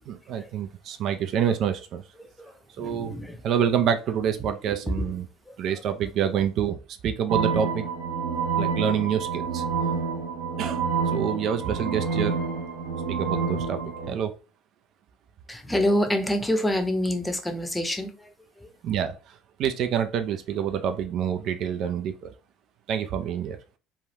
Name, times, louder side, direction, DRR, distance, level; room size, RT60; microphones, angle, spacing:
voice 1, 0.1-2.0 2.8-3.2 3.4-5.2 5.6-7.9 8.6-9.6 10.6-12.3 13.1-13.8 14.1-14.3 18.8-22.3 22.9-23.6, right 8 dB, 60° right, 8 dB, 0.4 m, -27 dB
voice 2, 2.2-3.4 4.7-5.1 5.5-5.6 15.5-18.7, left 1 dB, 10° left, 6 dB, 0.7 m, -27 dB
sound 1, 7.3-14.1, right 5 dB, 75° right, 0.8 m, -28 dB
3.3 x 2.2 x 2.8 m, 0.33 s
hypercardioid pair, 75°, 0 cm